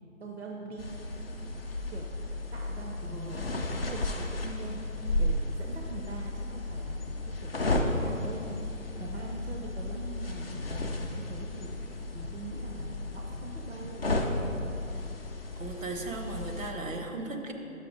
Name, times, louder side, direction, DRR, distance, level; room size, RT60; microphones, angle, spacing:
voice 1, 0.2-1.0 1.5-1.6 1.9-14.1 14.5-14.7, right 3 dB, 55° right, -1 dB, 0.6 m, -43 dB
sound 1, 0.8-16.7, left 2 dB, 45° left, 0.5 m, -34 dB
voice 2, 3.0-3.9 15.6-17.5, right 3 dB, 70° right, 3 dB, 1.0 m, -38 dB
5.8 x 5.5 x 5.0 m, 2.9 s
figure-of-eight pair, 170°, 41 cm